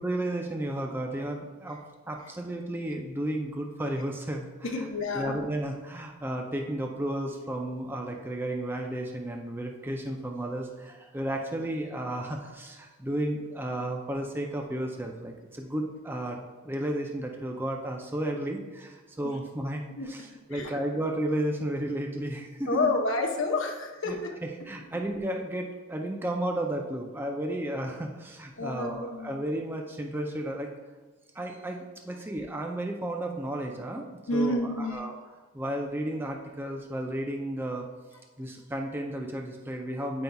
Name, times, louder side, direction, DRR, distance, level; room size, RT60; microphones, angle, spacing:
voice 1, 0.0-1.8 2.1-4.9 5.1-22.9 24.1-30.7 31.4-37.9 38.4-40.2, right 1 dB, 10° right, 2 dB, 0.4 m, -33 dB
voice 2, 4.7-5.4 19.9-20.1 20.5-20.8 22.7-24.3 28.6-29.3 34.3-35.0, left 2 dB, 60° left, 2 dB, 0.8 m, -29 dB
8.8 x 5.3 x 2.3 m, 1.3 s
head